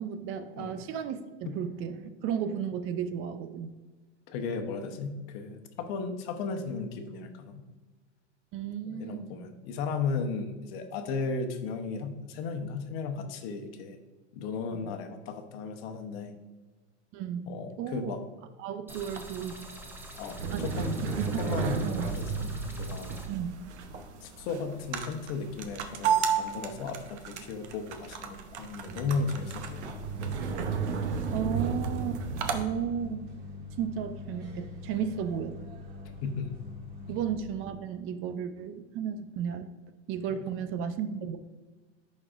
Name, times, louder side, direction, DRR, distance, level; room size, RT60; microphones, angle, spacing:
voice 1, 0.0-3.8 8.5-9.6 14.7-14.9 17.1-18.1 18.6-19.7 20.5-20.7 21.0-21.4 21.8-22.1 23.3-23.5 31.3-33.2 33.8-35.6 37.1-39.7 40.1-41.4, right 8 dB, 40° right, 10 dB, 0.5 m, -34 dB
voice 2, 4.3-7.6 8.9-14.0 14.3-16.3 17.5-18.2 20.2-22.5 22.8-23.2 24.2-29.8 30.2-30.4 36.0-36.6 37.1-37.2, left 4 dB, 60° left, 6 dB, 1.0 m, -35 dB
sound 1, 18.9-23.3, right 1 dB, 5° right, 0.8 m, -47 dB
sound 2, 18.9-32.6, right 6 dB, 75° right, 0.9 m, -33 dB
sound 3, 28.9-37.3, left 3 dB, 55° right, 1.6 m, -43 dB
11.0 x 4.2 x 2.5 m, 1.3 s
hypercardioid pair, 110°, 34 cm